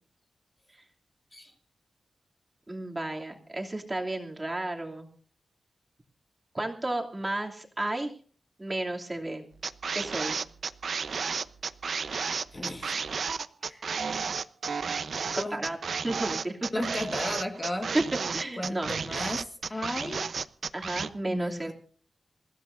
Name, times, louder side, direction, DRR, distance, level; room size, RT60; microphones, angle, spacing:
voice 1, 2.7-5.1 6.5-8.1 8.6-9.4 9.9-10.4 15.3-15.8 16.0-16.6 17.9-18.0 18.3-18.9 19.7-19.8 20.7-21.7, right 2 dB, 15° right, 1 dB, 2.8 m, -32 dB
sound 1, 9.6-21.1, right 5 dB, 55° right, 0.8 m, -32 dB
voice 2, 12.5-13.0 13.6-13.8 15.3-15.6 16.7-17.9 18.6-20.3 21.3-21.7, left 1 dB, 20° left, 4 dB, 1.6 m, -34 dB
28.5 x 16.0 x 2.6 m, 0.42 s
wide cardioid pair, 165°, 0 cm